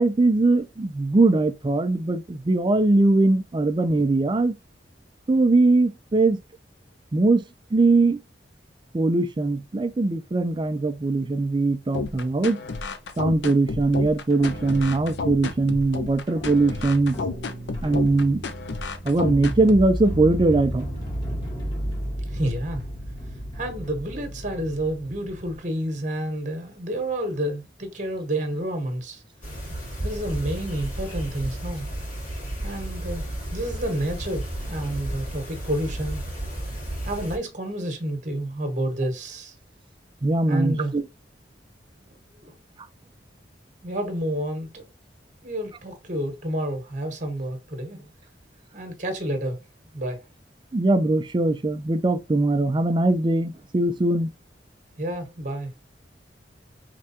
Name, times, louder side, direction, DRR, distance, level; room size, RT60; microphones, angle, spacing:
voice 1, 0.0-4.5 5.3-6.4 7.1-7.4 7.7-8.2 8.9-12.6 13.2-17.2 17.8-18.4 19.0-20.9 40.2-41.0 50.7-54.3, right 2 dB, 25° right, 0.4 m, -21 dB
sound 1, 11.9-19.9, left 4 dB, 70° left, 0.6 m, -32 dB
sound 2, 14.3-25.6, equal, 25° left, 1.4 m, -34 dB
voice 2, 22.3-22.9 23.5-29.2 30.0-31.9 32.6-33.2 33.5-36.2 37.0-39.5 40.5-40.9 42.1-42.2 42.4-42.6 43.8-44.9 45.4-48.1 48.7-49.6 49.9-50.2 55.0-55.7, right 1 dB, 45° right, 1.2 m, -29 dB
sound 3, 29.4-37.4, right 1 dB, 45° left, 1.9 m, -33 dB
4.9 x 3.3 x 2.7 m
head